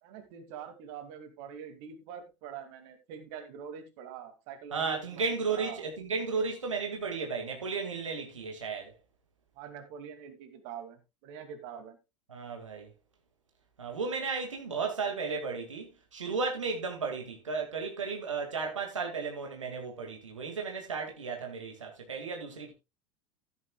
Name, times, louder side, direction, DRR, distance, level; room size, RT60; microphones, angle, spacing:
voice 1, 0.0-5.8 9.6-12.0, right 7 dB, 55° right, 2.4 m, -44 dB
voice 2, 4.7-8.9 12.3-12.9 13.8-22.7, right 4 dB, 80° right, 2.2 m, -34 dB
14.5 x 9.8 x 2.3 m
figure-of-eight pair, 75°, 16 cm